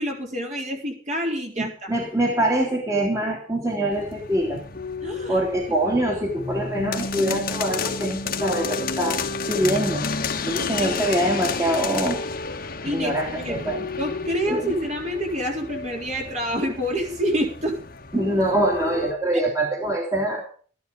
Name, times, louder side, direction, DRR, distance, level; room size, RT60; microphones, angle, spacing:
voice 1, 0.0-1.9 5.0-5.4 5.9-6.0 7.3-7.4 10.8-10.9 12.8-13.2 13.4-17.8, equal, 40° right, 1 dB, 3.9 m, -27 dB
voice 2, 1.6-4.6 5.3-9.2 9.5-10.0 10.5-12.2 12.9-13.8 14.5-14.6 18.1-20.5, right 1 dB, 20° right, 0 dB, 2.8 m, -24 dB
sound 1, 3.9-19.1, left 4 dB, 50° left, 1.6 m, -31 dB
14.0 x 12.0 x 5.2 m, 0.42 s
head